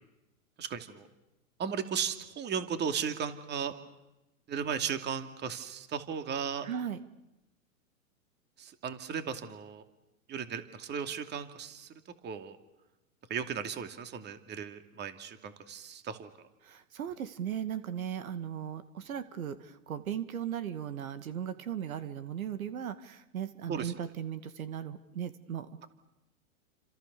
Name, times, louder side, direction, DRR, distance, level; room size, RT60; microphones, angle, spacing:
voice 1, 0.6-1.1 1.6-3.7 4.5-6.7 8.6-9.8 10.3-11.9 12.2-12.6 13.3-16.3 23.7-23.9, right 7 dB, 25° right, 8 dB, 2.6 m, -36 dB
voice 2, 6.6-7.0 16.6-25.9, right 9 dB, 80° right, 11 dB, 2.2 m, -37 dB
30.0 x 26.5 x 6.9 m, 0.94 s
hypercardioid pair, 125°, 42 cm